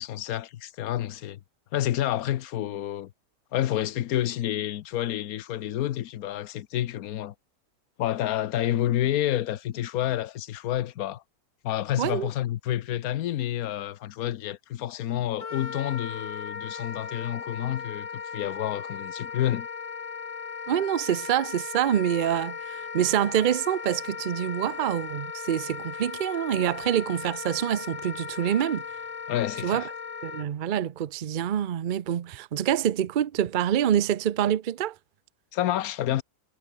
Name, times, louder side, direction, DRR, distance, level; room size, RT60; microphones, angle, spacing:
voice 1, 0.0-1.4 1.7-3.1 3.5-7.3 8.0-11.2 11.6-19.7 29.3-29.9 35.5-36.2, left 12 dB, 65° left, 1.1 m, -29 dB
voice 2, 12.0-12.3 20.7-28.8 29.6-29.8 30.2-34.9, right 10 dB, 65° right, 0.5 m, -26 dB
Wind instrument woodwind instrument, 15.4-30.5, left 5 dB, 50° left, 0.4 m, -37 dB
omnidirectional pair, 1.7 m